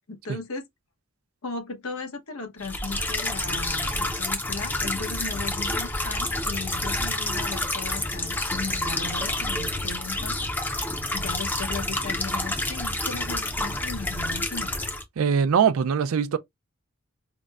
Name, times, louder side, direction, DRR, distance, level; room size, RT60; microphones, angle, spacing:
voice 1, 0.1-0.6 1.4-10.4 11.1-14.7, left 4 dB, 90° left, 1.0 m, -36 dB
sound 1, 2.6-15.0, left 2 dB, 10° left, 0.5 m, -28 dB
voice 2, 15.2-16.4, right 7 dB, 85° right, 0.4 m, -21 dB
5.0 x 2.1 x 2.3 m
head